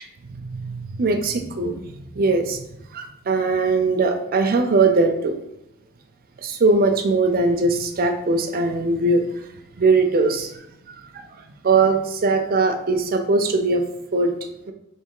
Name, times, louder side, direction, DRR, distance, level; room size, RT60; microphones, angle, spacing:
voice 1, 0.3-5.3 6.4-9.2 9.8-10.6 11.1-13.8 14.1-14.3, right 3 dB, 40° right, 5 dB, 0.4 m, -21 dB
3.3 x 2.9 x 4.7 m, 0.82 s
head